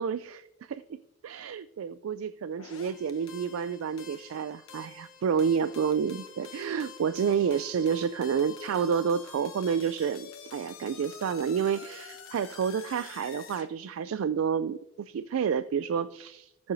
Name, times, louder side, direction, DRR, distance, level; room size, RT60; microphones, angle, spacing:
voice 1, 0.0-16.7, right 7 dB, 85° right, 14 dB, 0.3 m, -30 dB
sound 1, 2.6-13.7, left 6 dB, 85° left, 1.1 m, -48 dB
19.0 x 7.0 x 2.7 m, 0.89 s
head